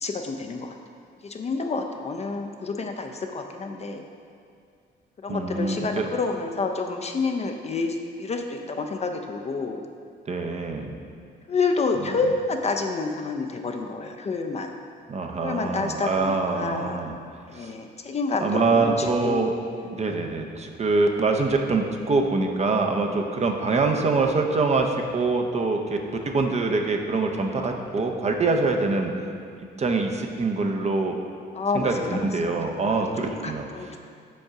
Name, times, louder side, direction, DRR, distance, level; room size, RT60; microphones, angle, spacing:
voice 1, 0.0-0.7 1.2-4.0 5.2-9.8 11.5-14.7 15.4-17.0 17.5-19.5 31.5-32.3 32.8-33.0 33.3-33.9, left 4 dB, 35° left, 4 dB, 0.5 m, -28 dB
voice 2, 5.3-6.1 10.3-10.9 15.1-17.1 17.6-17.7 18.4-19.5 20.0-26.0 26.3-29.1 29.8-31.2 31.7-33.7, right 3 dB, 35° right, 3 dB, 0.6 m, -24 dB
5.3 x 3.7 x 5.7 m, 2.3 s
cardioid pair, 90°, 20 cm